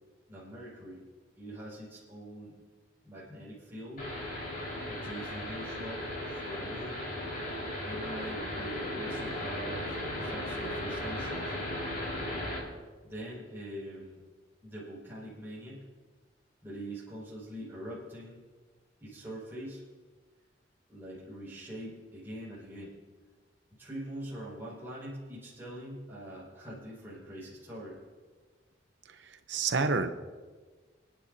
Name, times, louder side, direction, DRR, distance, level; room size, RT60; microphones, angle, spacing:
voice 1, 0.3-1.0 1.4-2.5 3.0-4.1 4.9-6.1 6.4-7.0 7.8-11.6 13.0-14.2 14.6-15.8 16.6-18.4 19.0-19.8 20.9-22.9 23.8-28.0, right 1 dB, 10° right, -9 dB, 5.2 m, -43 dB
sound 1, 4.0-12.6, left 1 dB, 50° left, 4.8 m, -36 dB
voice 2, 29.1-30.1, right 4 dB, 70° right, 9 dB, 0.8 m, -29 dB
26.5 x 10.5 x 2.7 m, 1.4 s
head